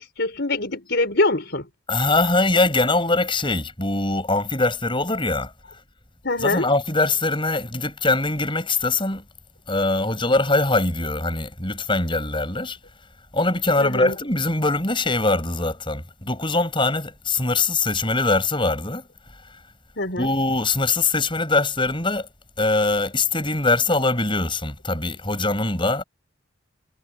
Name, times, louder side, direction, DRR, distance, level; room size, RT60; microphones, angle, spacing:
voice 1, 0.0-1.7 6.2-6.6 13.8-14.1 20.0-20.3, left 2 dB, 55° left, 5.1 m, -24 dB
voice 2, 1.9-5.5 6.4-9.2 9.7-12.8 13.3-19.1 20.2-22.3 22.6-26.0, left 2 dB, 25° left, 6.8 m, -22 dB
head